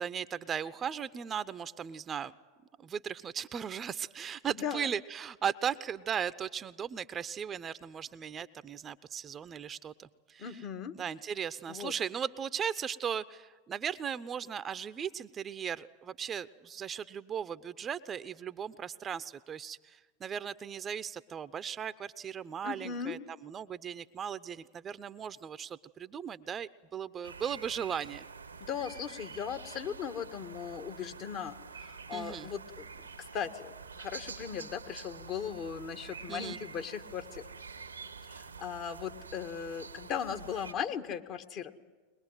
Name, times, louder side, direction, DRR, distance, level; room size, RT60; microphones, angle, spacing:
voice 1, 0.0-2.3 2.8-10.5 11.0-28.3 32.1-32.5 36.3-36.6, right 8 dB, 30° right, 14 dB, 0.7 m, -37 dB
voice 2, 10.4-10.9 11.7-11.9 22.6-23.2 28.6-33.1 33.3-37.5 38.3-41.7, left 7 dB, 45° left, 7 dB, 1.7 m, -38 dB
sound 1, 27.2-40.7, right 5 dB, 90° right, 1.2 m, -47 dB
22.0 x 21.5 x 9.1 m, 1.3 s
figure-of-eight pair, 90°, 0 cm